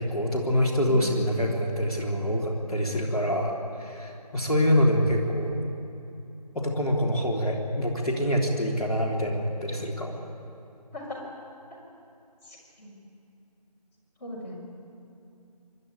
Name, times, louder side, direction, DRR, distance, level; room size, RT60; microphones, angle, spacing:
voice 1, 0.0-5.6 6.5-10.2, equal, ahead, -12 dB, 1.4 m, -25 dB
voice 2, 10.9-11.3 12.4-12.9 14.2-14.5, left 1 dB, 20° left, -7 dB, 4.7 m, -39 dB
25.5 x 12.0 x 9.6 m, 2.7 s
figure-of-eight pair, 165°, 21 cm